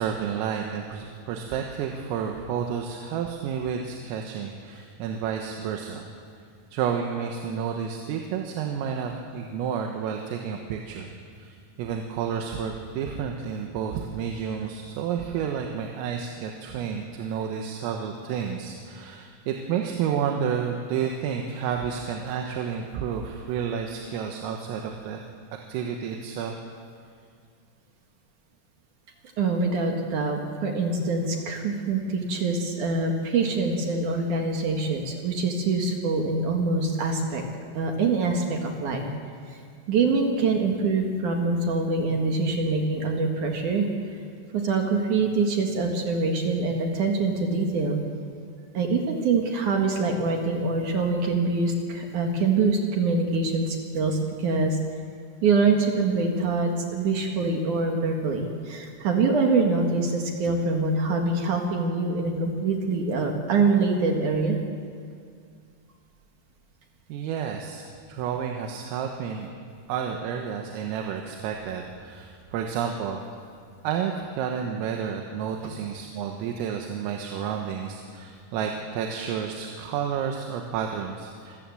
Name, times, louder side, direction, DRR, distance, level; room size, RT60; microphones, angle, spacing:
voice 1, 0.0-6.1 6.7-25.2 25.7-26.6 67.1-69.5 69.9-73.2 73.8-81.6, right 7 dB, 85° right, 2 dB, 3.9 m, -30 dB
voice 2, 29.4-37.4 37.7-39.1 39.9-43.9 44.5-48.0 48.7-54.8 55.4-64.6, right 3 dB, 60° right, 2 dB, 2.2 m, -24 dB
27.5 x 14.5 x 7.8 m, 2.2 s
omnidirectional pair, 5.9 m